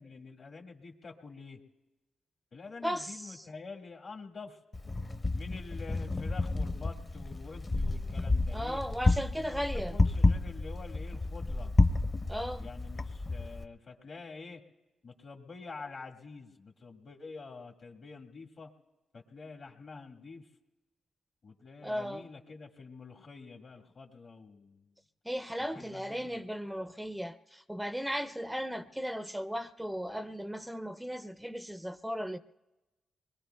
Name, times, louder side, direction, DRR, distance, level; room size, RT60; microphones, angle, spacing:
voice 1, 0.0-1.6 2.5-4.6 5.3-8.8 9.3-11.7 12.6-14.6 15.0-18.7 19.1-20.5 21.4-24.9 25.6-26.4 26.8-27.0, left 4 dB, 60° left, 1.7 m, -47 dB
voice 2, 2.8-3.5 8.5-9.9 12.3-12.7 21.8-22.2 25.2-32.4, equal, 5° right, 0.4 m, -36 dB
Wind, 4.7-13.6, left 2 dB, 35° left, 0.8 m, -30 dB
29.5 x 21.5 x 2.3 m
cardioid pair, 70°, 0 cm